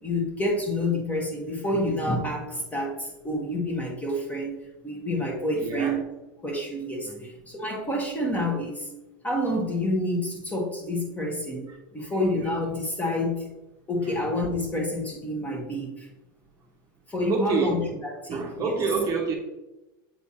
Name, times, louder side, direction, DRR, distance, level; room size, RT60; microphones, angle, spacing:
voice 1, 0.0-6.0 6.4-8.9 9.2-13.5 13.9-16.1 17.1-18.7, left 1 dB, 15° left, 0 dB, 1.4 m, -28 dB
voice 2, 5.6-6.0 7.0-7.3 11.7-12.5 14.0-14.3 17.3-17.9 18.3-19.4, right 4 dB, 30° right, 1 dB, 0.9 m, -29 dB
7.6 x 3.3 x 4.2 m, 1.0 s
supercardioid pair, 125°, 11 cm